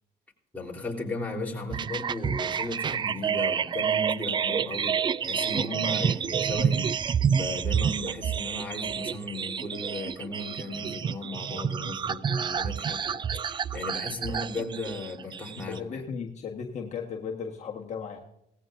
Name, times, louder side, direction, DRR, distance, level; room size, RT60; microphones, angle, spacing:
voice 1, 0.5-16.0, left 2 dB, 10° left, -2 dB, 3.7 m, -36 dB
sound 1, 1.7-15.8, right 7 dB, 30° right, 0.3 m, -29 dB
voice 2, 14.3-14.7 15.5-18.2, left 6 dB, 45° left, 0 dB, 1.5 m, -36 dB
18.0 x 15.0 x 2.6 m, 0.80 s
cardioid pair, 110°, 17 cm